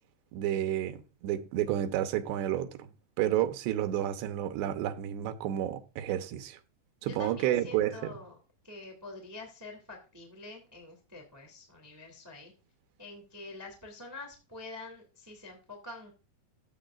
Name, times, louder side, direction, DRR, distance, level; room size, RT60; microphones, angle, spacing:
voice 1, 0.3-2.9 3.2-6.6 7.0-8.1, right 12 dB, 80° right, 3.1 m, -31 dB
voice 2, 7.0-8.4 8.6-12.5 13.0-16.1, left 2 dB, 5° right, 1.4 m, -46 dB
13.0 x 8.0 x 2.4 m
omnidirectional pair, 5.0 m